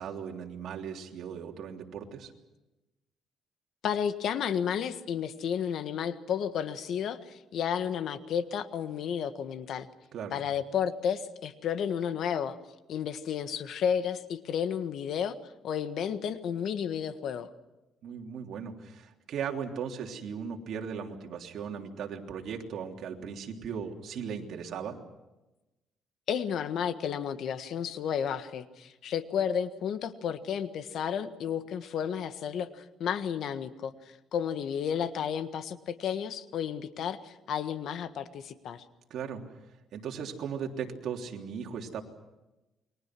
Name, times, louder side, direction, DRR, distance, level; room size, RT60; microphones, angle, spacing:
voice 1, 0.0-2.3 10.1-10.4 18.0-25.0 39.1-39.4 39.9-42.0, right 7 dB, 60° right, 2 dB, 3.3 m, -37 dB
voice 2, 3.8-9.9 10.3-12.6 12.9-15.3 15.6-17.5 26.3-33.9 34.3-38.8, left 8 dB, 65° left, 10 dB, 1.6 m, -32 dB
29.5 x 22.5 x 6.2 m, 1.0 s
cardioid pair, 120°, 0 cm